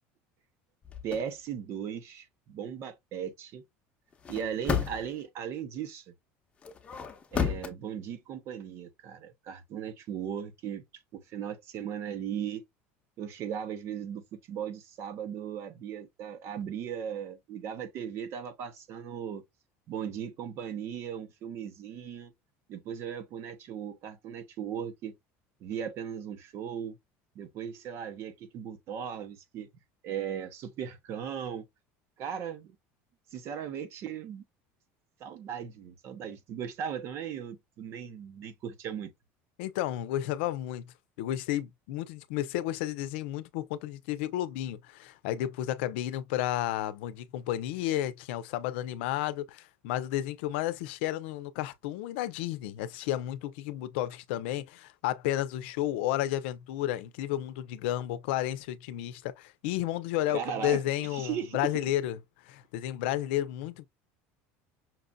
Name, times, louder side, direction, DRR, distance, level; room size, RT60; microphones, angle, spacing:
sound 1, 0.8-1.2 4.1-5.2 6.6-7.7, left 7 dB, 20° left, 0.9 m, -32 dB
voice 1, 1.0-3.6 4.3-6.1 7.3-12.6 13.2-19.4 19.9-22.3 22.7-25.1 25.6-27.0 27.3-29.7 30.0-31.7 32.2-32.8 33.3-34.4 35.2-39.1 60.3-61.6, right 8 dB, 50° right, 1.1 m, -37 dB
voice 2, 39.6-40.9 41.2-62.2 62.4-63.8, left 13 dB, 90° left, 0.6 m, -32 dB
5.9 x 2.6 x 2.2 m
cardioid pair, 145°, 6 cm